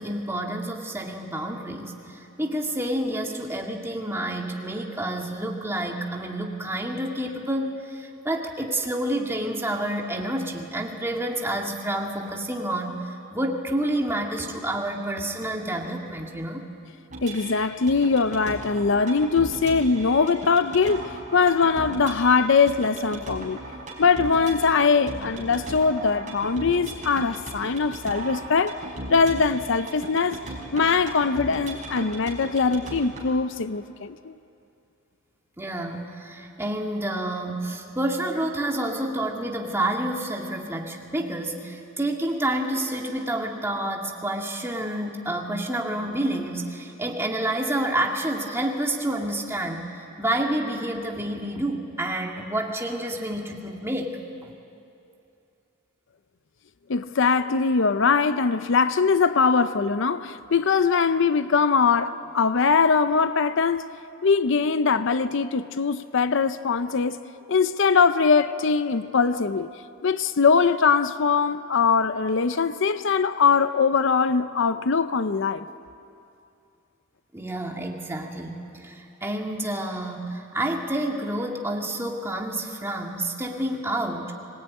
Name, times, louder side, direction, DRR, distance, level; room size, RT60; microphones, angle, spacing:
voice 1, 0.0-16.7 35.6-49.9 50.2-54.5 77.3-84.3, right 1 dB, 10° right, 2.0 m, -29 dB
sound 1, 17.1-33.3, right 1 dB, 35° right, 5.0 m, -37 dB
voice 2, 17.2-23.6 24.0-28.8 29.1-30.4 30.7-34.3 56.9-63.9 64.2-67.2 67.5-69.7 70.0-75.7, left 5 dB, 60° left, 0.6 m, -22 dB
25.0 x 19.0 x 9.4 m
head